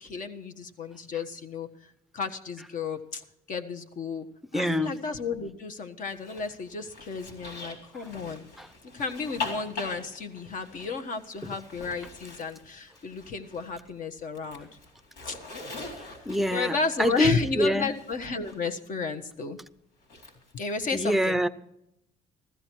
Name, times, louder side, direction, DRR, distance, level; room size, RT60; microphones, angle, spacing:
voice 1, 0.0-1.7 2.1-3.2 3.5-4.3 4.5-8.5 8.9-14.7 15.2-15.4 16.5-19.6 20.5-21.4, left 4 dB, 50° left, 7 dB, 1.4 m, -33 dB
voice 2, 4.5-4.9 8.6-8.7 11.4-11.6 16.3-17.9 20.9-21.5, equal, ahead, 14 dB, 0.6 m, -25 dB
Zipper (clothing), 6.0-13.9 14.2-18.6 20.0-20.9, left 3 dB, 85° left, 4.1 m, -43 dB
15.0 x 14.0 x 4.6 m, 0.81 s
cardioid pair, 110°, 17 cm